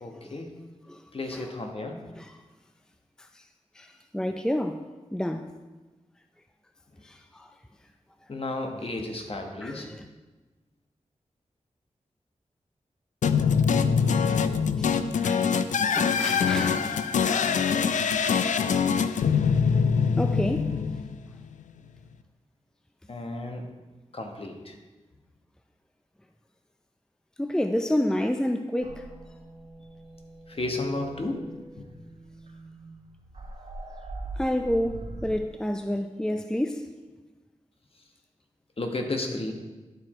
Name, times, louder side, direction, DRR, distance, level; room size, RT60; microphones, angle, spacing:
voice 1, 0.0-0.5 1.1-2.0 8.3-9.9 23.1-23.6 24.1-24.7 30.5-31.5 31.8-31.9 38.8-39.5, left 2 dB, 50° left, 1.3 m, -33 dB
voice 2, 0.9-1.4 2.2-2.3 3.2-3.4 3.7-5.5 7.0-7.5 9.6-10.0 14.8-17.1 19.1-19.2 20.2-20.8 27.4-29.1 34.4-36.9, left 1 dB, 5° left, 0.5 m, -30 dB
sound 1, 13.2-21.5, left 6 dB, 85° left, 0.4 m, -24 dB
sound 2, 28.8-35.4, right 2 dB, 55° right, 1.7 m, -42 dB
11.5 x 4.8 x 4.3 m
cardioid pair, 45°, 12 cm